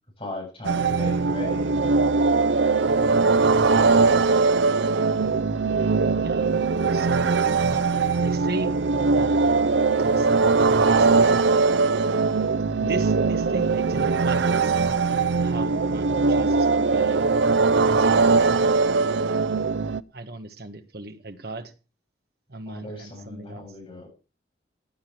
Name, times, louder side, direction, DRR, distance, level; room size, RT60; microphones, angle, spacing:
voice 1, 0.2-2.0 3.4-4.2 5.2-5.5 12.8-13.0 22.7-24.1, left 2 dB, 30° left, 0 dB, 7.8 m, -38 dB
sound 1, 0.6-20.0, right 4 dB, 70° right, 0.6 m, -21 dB
voice 2, 3.0-3.4 4.7-4.8 6.2-7.3 7.5-7.9 8.2-8.8 9.1-11.4 11.9-12.0 12.9-15.0 15.4-17.3 17.9-18.8 19.6-19.7 20.1-21.7 22.5-23.7, right 2 dB, 55° right, 8 dB, 1.6 m, -37 dB
16.0 x 9.9 x 4.6 m, 0.33 s
head